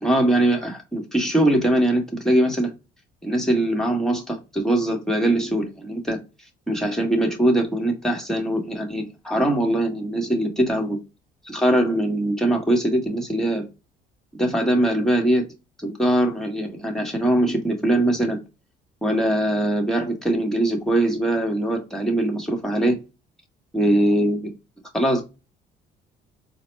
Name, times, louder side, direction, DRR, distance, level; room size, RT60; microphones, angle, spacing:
voice 1, 0.0-2.7 3.2-6.2 6.7-11.0 11.5-13.7 14.3-15.5 15.8-18.4 19.0-23.0 23.7-24.5 24.9-25.3, right 1 dB, 5° left, 1.3 m, -22 dB
4.0 x 2.2 x 3.1 m
supercardioid pair, 80°, 20 cm